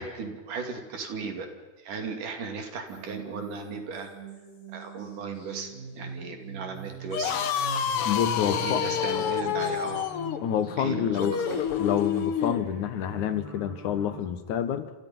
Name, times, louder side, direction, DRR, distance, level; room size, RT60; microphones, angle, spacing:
voice 1, 0.0-1.5 1.8-4.1 4.7-7.4 8.4-10.1 10.8-11.1 11.5-11.6, right 5 dB, 85° right, 4 dB, 4.4 m, -36 dB
sound 1, 2.9-14.2, right 1 dB, 35° left, 6.8 m, -42 dB
sound 2, 7.0-12.7, left 8 dB, 60° left, 1.8 m, -28 dB
voice 2, 8.0-8.8 10.4-11.4 11.8-14.9, left 9 dB, 75° left, 11 dB, 2.7 m, -28 dB
28.5 x 27.5 x 5.5 m, 1.2 s
omnidirectional pair, 3.6 m